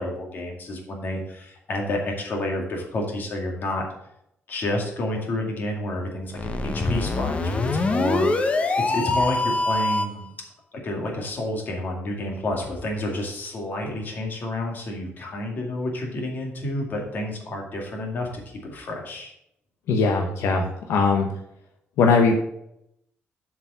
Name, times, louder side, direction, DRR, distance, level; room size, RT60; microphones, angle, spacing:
voice 1, 0.0-3.9 4.5-8.5 8.9-10.3 10.7-19.3, left 1 dB, 45° left, 0 dB, 2.2 m, -29 dB
sound 1, 6.3-10.2, left 3 dB, 30° left, 0.8 m, -24 dB
voice 2, 19.9-21.3 22.0-22.4, left 4 dB, 90° left, 3 dB, 0.9 m, -20 dB
7.3 x 4.9 x 5.6 m, 0.78 s
cardioid pair, 130°, 4 cm